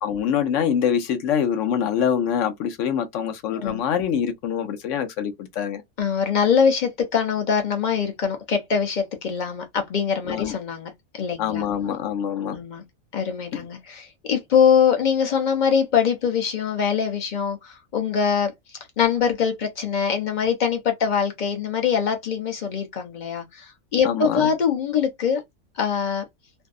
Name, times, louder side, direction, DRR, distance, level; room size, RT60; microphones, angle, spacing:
voice 1, 0.0-5.8 10.3-10.6 11.4-12.6 13.5-13.7 24.0-24.5, left 8 dB, 70° left, 0.9 m, -25 dB
voice 2, 3.5-3.8 6.0-11.7 12.5-12.8 13.1-18.5 19.0-25.4 25.8-26.2, left 7 dB, 50° left, 0.6 m, -23 dB
2.6 x 2.1 x 2.3 m
omnidirectional pair, 1.5 m